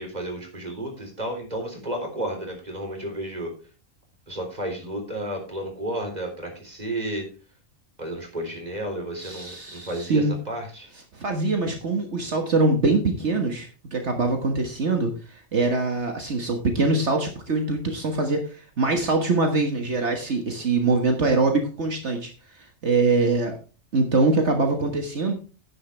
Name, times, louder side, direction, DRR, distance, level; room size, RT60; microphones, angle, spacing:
voice 1, 0.0-3.5 4.3-7.3 8.0-10.9, right 1 dB, 30° right, 2 dB, 3.8 m, -32 dB
voice 2, 9.2-10.4 11.1-22.3 22.8-23.6 23.9-25.3, right 3 dB, 60° right, 4 dB, 1.7 m, -23 dB
10.0 x 10.0 x 3.4 m, 0.35 s
omnidirectional pair, 1.3 m